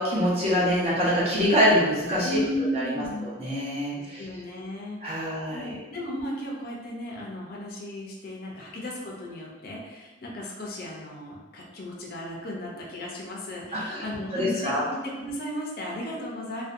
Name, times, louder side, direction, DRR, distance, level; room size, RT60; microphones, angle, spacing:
voice 1, 0.0-2.4 2.7-4.2 5.0-5.8 13.7-14.0 14.3-14.8, equal, 30° right, -7 dB, 0.7 m, -25 dB
voice 2, 2.2-3.3 4.0-16.6, left 1 dB, 50° left, -3 dB, 0.5 m, -35 dB
2.5 x 2.2 x 2.4 m, 1.2 s
head